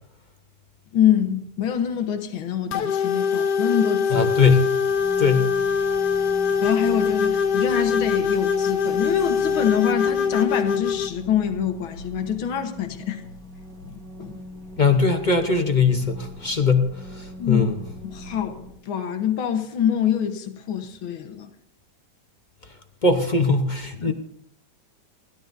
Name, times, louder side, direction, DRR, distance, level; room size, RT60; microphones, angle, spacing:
voice 1, 0.9-4.3 6.6-13.2 13.9-14.4 17.4-17.7 18.0-21.5 24.0-24.1, left 9 dB, 85° left, 2.0 m, -25 dB
sound 1, 2.7-11.1, left 6 dB, 65° left, 1.3 m, -23 dB
voice 2, 4.1-4.7 5.2-5.5 14.8-16.9 17.2-17.7 23.0-24.1, left 4 dB, 35° left, 0.7 m, -20 dB
sound 2, 4.9-18.7, left 1 dB, ahead, 3.5 m, -41 dB
29.5 x 12.5 x 2.7 m
omnidirectional pair, 2.2 m